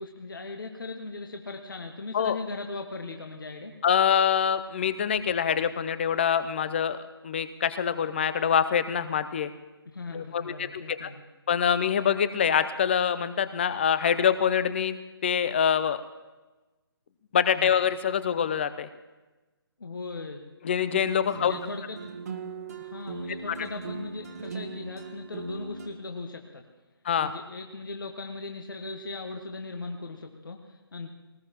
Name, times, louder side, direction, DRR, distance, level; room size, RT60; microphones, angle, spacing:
voice 1, 0.0-3.7 9.9-11.2 17.6-17.8 19.8-20.4 21.3-22.0 22.8-26.7 27.2-31.1, left 3 dB, 55° left, 4 dB, 1.4 m, -38 dB
voice 2, 3.8-9.5 10.1-11.1 11.5-15.0 15.2-16.0 17.3-18.9 20.6-21.5 27.0-27.3, left 8 dB, 25° left, 13 dB, 0.6 m, -25 dB
sound 1, 20.9-25.9, right 5 dB, 40° right, 1.4 m, -39 dB
21.0 x 19.5 x 3.0 m, 1.2 s
figure-of-eight pair, 145°, 13 cm